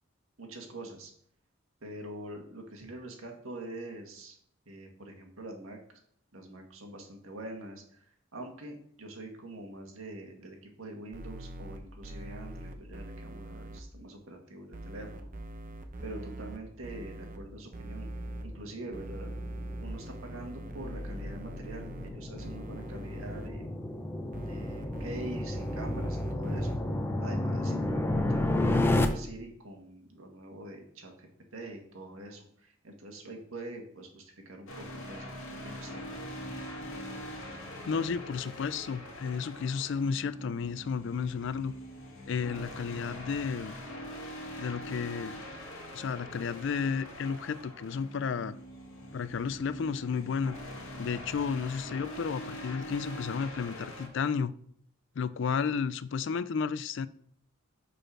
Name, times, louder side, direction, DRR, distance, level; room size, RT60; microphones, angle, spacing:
voice 1, 0.4-1.1 1.8-4.4 4.7-5.8 6.3-8.0 8.3-15.3 16.0-18.1 18.4-19.3 19.8-23.7 24.4-26.8 27.2-35.3 35.6-36.0, right 1 dB, 85° right, 2 dB, 1.8 m, -44 dB
sound 1, 11.1-13.8 14.7-17.4 17.7-18.4 18.9-22.1 22.4-23.5 24.3-26.8, right 1 dB, 40° right, 0.8 m, -42 dB
sound 2, 17.9-29.1, left 1 dB, 10° left, 0.6 m, -32 dB
sound 3, 34.7-54.1, equal, 85° left, 2.1 m, -43 dB
voice 2, 37.9-41.7 42.3-43.7 44.6-45.4 45.9-48.6 49.1-50.6 51.0-54.5 55.2-57.1, left 6 dB, 60° left, 16 dB, 0.4 m, -32 dB
6.5 x 5.1 x 6.1 m, 0.64 s
head